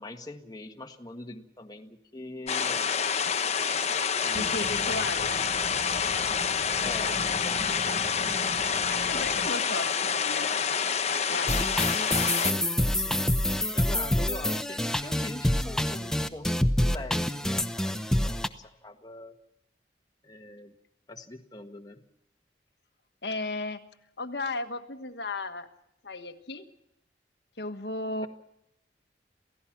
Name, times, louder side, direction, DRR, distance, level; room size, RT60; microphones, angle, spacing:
voice 1, 0.0-2.8 4.0-5.0 6.8-7.7 12.3-13.4 13.7-19.3 20.2-20.7 21.1-22.0, left 2 dB, 20° left, 4 dB, 1.5 m, -43 dB
sound 1, 2.5-12.5, left 6 dB, 35° left, 1.0 m, -28 dB
voice 2, 4.2-5.4 8.6-10.5 11.3-11.6 23.2-23.8 24.2-25.7 26.0-26.7 27.6-28.3, left 2 dB, 65° left, 7 dB, 1.5 m, -35 dB
sound 2, 4.3-9.5, right 1 dB, 25° right, 1.1 m, -41 dB
sound 3, 11.5-18.5, left 1 dB, 5° left, 0.9 m, -27 dB
28.5 x 16.5 x 6.0 m, 0.81 s
head